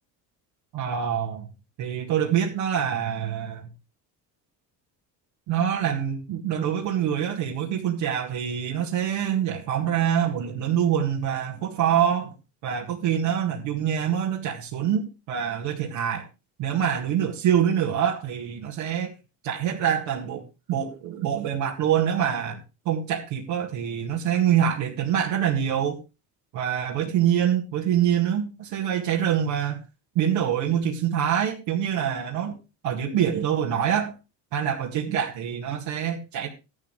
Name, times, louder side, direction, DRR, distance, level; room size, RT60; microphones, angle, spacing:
voice 1, 0.7-1.5 1.8-3.7 5.5-12.3 12.6-16.2 16.6-19.1 19.4-26.0 26.5-29.8 30.2-32.6 32.8-34.1 34.5-36.5, right 9 dB, 75° right, -1 dB, 2.1 m, -25 dB
13.0 x 12.0 x 3.3 m, 0.29 s
supercardioid pair, 90°, 45 cm